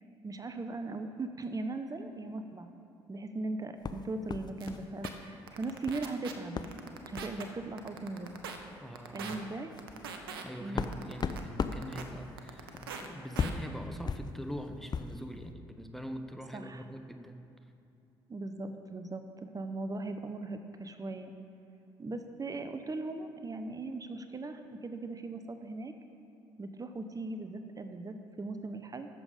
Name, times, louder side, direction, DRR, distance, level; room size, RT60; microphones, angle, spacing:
voice 1, 0.2-2.7 3.1-6.6 7.1-8.4 9.1-9.7 10.6-11.0 16.5-16.8 18.3-21.3 22.0-25.9 26.6-29.1, right 2 dB, 30° right, 8 dB, 0.9 m, -39 dB
sound 1, 3.8-5.3 5.5-6.1 6.6-6.8 7.1-7.4 8.3-8.4 8.7-8.9 9.4-15.2, left 5 dB, 35° left, 0.6 m, -38 dB
sound 2, 4.6-4.7 5.0-5.1 5.5-6.3 6.6-7.4 7.8-8.6 8.9-9.4 9.8-10.4 10.8-12.0 12.4-13.1 13.3-13.5, right 7 dB, 90° right, 0.7 m, -41 dB
voice 2, 8.8-9.4 10.4-17.4, equal, ahead, 7 dB, 0.9 m, -43 dB
13.5 x 7.2 x 5.1 m, 2.8 s
hypercardioid pair, 55°, 12 cm